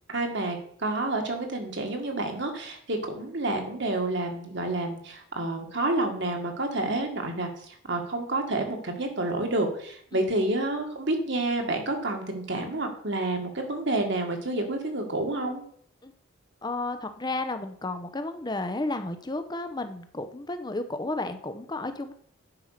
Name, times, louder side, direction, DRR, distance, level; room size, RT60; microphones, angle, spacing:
voice 1, 0.1-7.5 7.9-15.6, right 2 dB, 55° right, 3 dB, 1.8 m, -29 dB
voice 2, 16.6-22.1, left 2 dB, 20° left, 9 dB, 0.7 m, -32 dB
9.7 x 5.5 x 6.6 m, 0.62 s
head